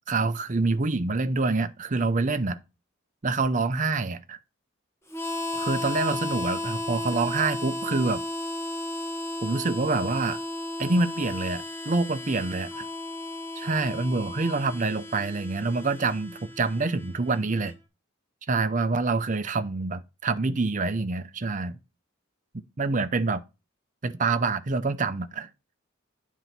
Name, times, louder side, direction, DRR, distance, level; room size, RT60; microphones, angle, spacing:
voice 1, 0.1-2.6 3.2-4.4 5.5-8.2 9.4-10.4 10.8-12.9 13.6-17.7 18.5-21.8 22.5-23.4 24.0-25.5, right 3 dB, 40° right, 0.6 m, -26 dB
Harmonica, 5.1-17.7, left 1 dB, 15° left, 1.1 m, -34 dB
9.5 x 4.0 x 5.8 m
head